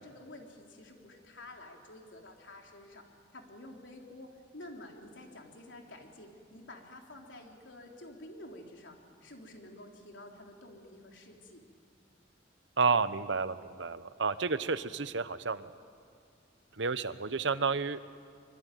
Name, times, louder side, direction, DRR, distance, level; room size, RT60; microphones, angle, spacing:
voice 1, 0.0-3.0 3.3-11.7, left 1 dB, 85° left, 1 dB, 3.6 m, -50 dB
voice 2, 12.8-15.7 16.8-18.1, right 4 dB, 75° right, 14 dB, 0.9 m, -31 dB
24.5 x 24.5 x 9.3 m, 2.3 s
head